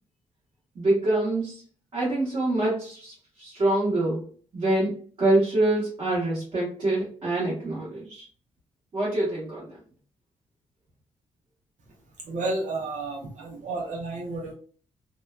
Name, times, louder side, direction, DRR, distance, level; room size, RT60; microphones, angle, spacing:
voice 1, 0.7-1.6 1.9-8.3 8.9-9.8, right 2 dB, 40° right, -8 dB, 1.1 m, -25 dB
voice 2, 12.2-14.5, right 2 dB, 70° right, -1 dB, 0.7 m, -31 dB
2.7 x 2.1 x 2.3 m, 0.43 s
cardioid pair, 125°, 13 cm